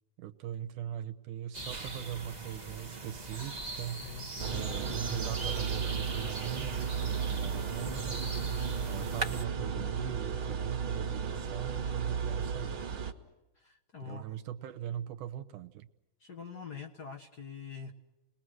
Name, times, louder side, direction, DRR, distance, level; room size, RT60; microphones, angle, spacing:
voice 1, 0.2-4.1 4.5-8.3 8.9-12.8 14.0-15.9, right 11 dB, 85° right, 7 dB, 2.6 m, -40 dB
sound 1, 1.5-9.4, right 3 dB, 25° right, 0.9 m, -40 dB
voice 2, 4.0-4.6 13.5-14.3 16.2-17.9, left 6 dB, 40° left, 0 dB, 1.6 m, -45 dB
sound 2, 4.4-13.1, right 6 dB, 50° right, 2.1 m, -34 dB
30.0 x 21.0 x 6.4 m, 0.97 s
omnidirectional pair, 3.5 m